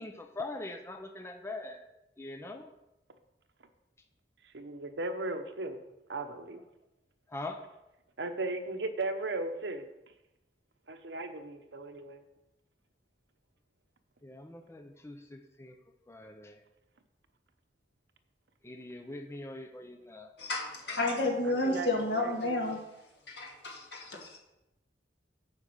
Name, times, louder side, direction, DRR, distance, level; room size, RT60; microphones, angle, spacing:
voice 1, 0.0-1.9 2.2-2.7 7.3-7.6 14.2-15.8 16.1-16.6 18.6-20.2, left 2 dB, 15° left, 5 dB, 0.6 m, -42 dB
voice 2, 4.4-5.8 6.1-6.6 8.2-9.9 10.9-12.2 21.4-22.8, right 2 dB, 80° right, 7 dB, 0.9 m, -37 dB
voice 3, 20.5-22.8 23.3-24.4, left 2 dB, 70° left, 0 dB, 2.2 m, -31 dB
8.2 x 5.1 x 7.1 m, 0.91 s
head